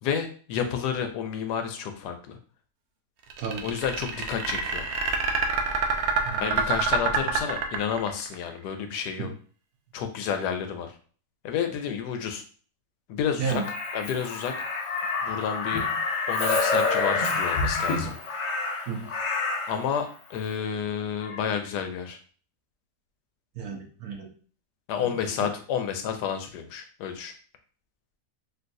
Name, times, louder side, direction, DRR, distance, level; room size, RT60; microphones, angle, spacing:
voice 1, 0.0-2.4 3.6-4.9 6.4-9.3 9.9-10.9 11.4-12.4 13.1-13.6 13.9-14.5 15.2-15.9 16.3-18.1 19.7-22.2 24.9-27.3, left 7 dB, 85° left, 7 dB, 1.2 m, -30 dB
sound 1, 3.3-8.3, right 5 dB, 85° right, 0.6 m, -26 dB
Crow, 13.5-19.8 21.2-21.4, left 4 dB, 60° left, 0.8 m, -28 dB
voice 2, 23.5-24.3 25.0-25.3, right 6 dB, 70° right, 1 dB, 1.2 m, -32 dB
3.8 x 2.4 x 2.6 m, 0.42 s
omnidirectional pair, 1.7 m